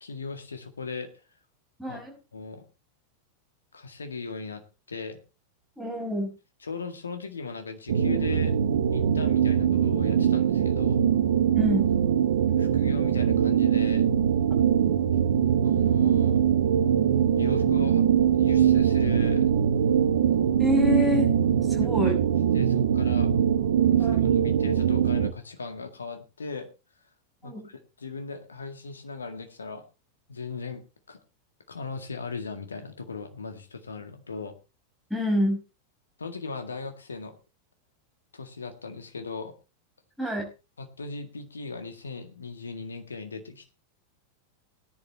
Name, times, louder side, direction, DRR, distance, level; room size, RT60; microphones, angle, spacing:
voice 1, 0.0-1.1 1.9-2.0 2.3-2.7 3.7-5.2 6.6-8.6 8.9-11.0 12.6-14.1 15.6-16.4 17.4-18.0 18.4-19.5 22.0-22.1 22.5-23.3 24.0-26.7 27.4-29.8 30.3-31.2 31.7-34.6 36.2-37.4 38.3-39.5 40.8-43.7, left 4 dB, 75° left, 7 dB, 2.0 m, -38 dB
voice 2, 1.8-2.2 5.8-6.3 11.5-11.9 20.6-21.3 21.7-22.2 24.0-24.3 27.4-27.7 35.1-35.6 40.2-40.5, left 1 dB, ahead, 2 dB, 5.8 m, -27 dB
sound 1, 7.9-25.3, right 8 dB, 60° right, 0.9 m, -22 dB
19.0 x 10.5 x 3.1 m, 0.30 s
figure-of-eight pair, 90°, 0 cm